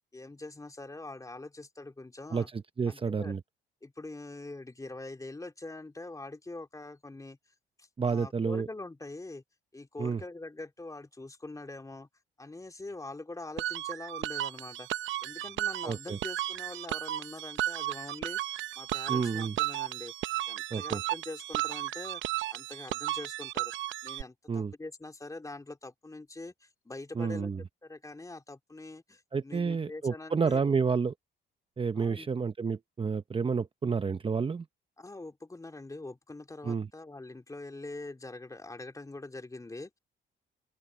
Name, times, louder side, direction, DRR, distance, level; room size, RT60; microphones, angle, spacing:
voice 1, 0.1-2.5 2.9-3.3 3.8-7.4 7.8-9.4 9.7-12.1 12.4-14.9 15.2-18.4 18.7-23.7 24.0-27.5 27.8-30.8 32.0-32.3 35.0-40.0, left 2 dB, 15° left, 3.1 m, -44 dB
voice 2, 2.3-3.4 8.0-8.7 10.0-10.2 15.8-16.2 19.1-19.6 20.7-21.0 24.5-24.7 27.1-27.6 29.3-31.1 31.8-34.7 36.6-36.9, right 5 dB, 25° right, 0.8 m, -30 dB
sound 1, 13.6-24.2, right 15 dB, 75° right, 0.7 m, -34 dB
open air
cardioid pair, 90°, 20 cm